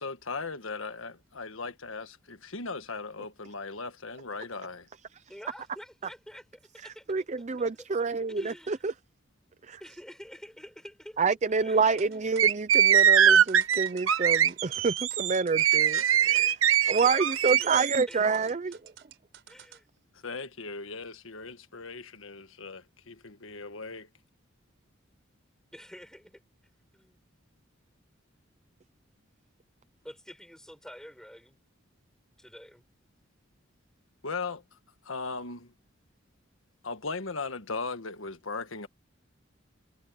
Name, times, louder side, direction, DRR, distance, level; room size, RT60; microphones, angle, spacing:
voice 1, 0.0-4.9 20.2-24.1 34.2-34.6 35.0-35.7 36.8-38.9, left 4 dB, 80° left, 1.5 m, -38 dB
voice 2, 5.3-7.9 8.3-8.8 9.8-11.2 11.6-12.2 16.9-18.8 19.5-19.9 25.7-26.4 26.9-27.2 30.0-31.6 32.4-32.8, equal, 5° left, 4.9 m, -48 dB
voice 3, 7.1-8.9 9.7-9.8 11.2-16.6 16.9-18.8, right 4 dB, 35° right, 0.5 m, -28 dB
sound 1, 11.9-19.8, right 9 dB, 65° right, 4.9 m, -51 dB
sound 2, 12.4-18.0, right 9 dB, 80° right, 1.0 m, -22 dB
head